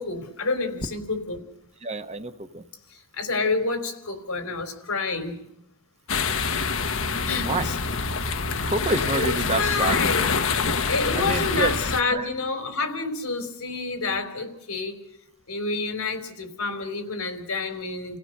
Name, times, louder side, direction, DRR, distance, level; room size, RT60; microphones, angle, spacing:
voice 1, 0.0-1.4 2.9-5.4 7.2-7.8 9.1-10.3 10.6-15.0 15.5-18.2, left 3 dB, 90° left, 6 dB, 3.9 m, -28 dB
voice 2, 1.8-2.6 7.4-7.7 8.7-10.0 11.1-11.7 12.1-12.3, right 3 dB, 30° right, 8 dB, 1.1 m, -27 dB
sound 1, 6.1-12.0, left 4 dB, 65° left, 1.2 m, -26 dB
29.5 x 17.0 x 6.6 m, 0.80 s
head